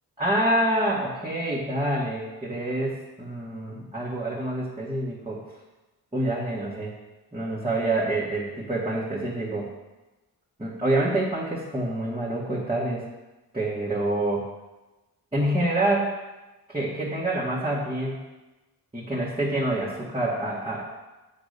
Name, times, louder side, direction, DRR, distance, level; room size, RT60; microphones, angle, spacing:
voice 1, 0.2-5.4 6.1-7.0 7.3-9.7 10.6-13.0 13.5-14.5 15.3-16.1 16.7-18.2 18.9-20.8, right 1 dB, 15° right, -7 dB, 1.9 m, -27 dB
8.0 x 4.1 x 6.7 m, 1.1 s
cardioid pair, 70°, 38 cm